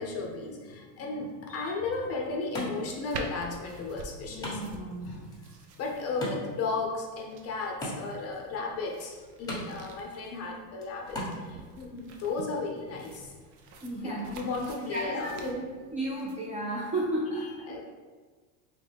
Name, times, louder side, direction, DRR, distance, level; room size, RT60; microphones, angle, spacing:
voice 1, 0.0-4.7 5.0-5.3 5.8-13.4 14.3-15.7 17.7-17.8, left 3 dB, 30° left, 0 dB, 0.6 m, -34 dB
voice 2, 0.9-1.3 4.3-5.2 13.8-14.4 14.9-17.8, right 1 dB, 15° right, -5 dB, 0.4 m, -34 dB
Wood, 1.7-11.7, equal, 10° left, 1.1 m, -42 dB
sound 1, 3.1-16.4, right 3 dB, 75° right, 0.8 m, -47 dB
3.8 x 3.1 x 3.3 m, 1.5 s
supercardioid pair, 130°, 48 cm